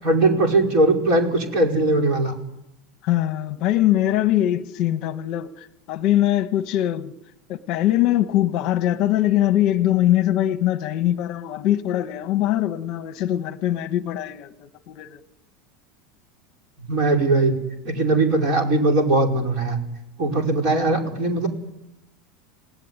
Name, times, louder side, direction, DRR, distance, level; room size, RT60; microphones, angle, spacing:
voice 1, 0.0-2.3 16.9-17.6 17.8-19.8 20.2-21.5, right 2 dB, 40° right, 5.3 m, -20 dB
voice 2, 3.0-7.1 7.5-15.2, left 13 dB, 40° left, 1.2 m, -22 dB
28.5 x 18.5 x 9.6 m
supercardioid pair, 170°, 0 cm